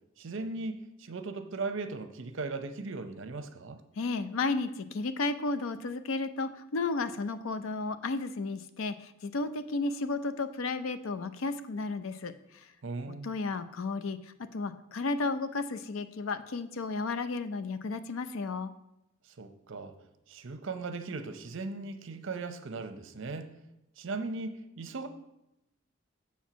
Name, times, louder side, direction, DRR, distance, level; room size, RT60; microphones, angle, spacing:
voice 1, 0.2-3.8 12.8-13.4 19.3-19.9 20.3-23.5 24.0-25.1, right 3 dB, 65° right, 8 dB, 0.7 m, -38 dB
voice 2, 4.0-12.3 13.1-14.2 14.5-18.7, left 3 dB, 80° left, 11 dB, 0.5 m, -33 dB
7.1 x 4.4 x 6.0 m, 0.86 s
head